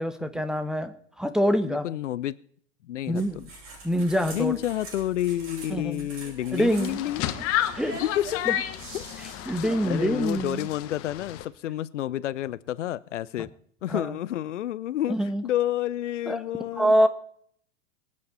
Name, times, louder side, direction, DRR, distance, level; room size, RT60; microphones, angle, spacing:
voice 1, 0.0-1.9 3.1-3.4 3.8-4.5 5.7-6.1 6.5-7.0 7.7-7.9 8.5-8.6 9.5-10.7 13.9-14.2 15.1-15.4 16.3-16.4 16.8-17.1, equal, ahead, 9 dB, 1.2 m, -25 dB
voice 2, 1.6-2.4 2.8-3.2 4.3-7.3 7.9-8.6 8.9-9.1 9.6-13.5 13.8-15.2 15.4-16.9, left 12 dB, 75° left, 19 dB, 0.7 m, -29 dB
sound 1, 3.1-10.4, right 3 dB, 35° right, 8.0 m, -44 dB
sound 2, 6.6-11.5, left 12 dB, 35° left, 1.4 m, -32 dB
24.5 x 8.6 x 4.1 m, 0.63 s
hypercardioid pair, 105°, 37 cm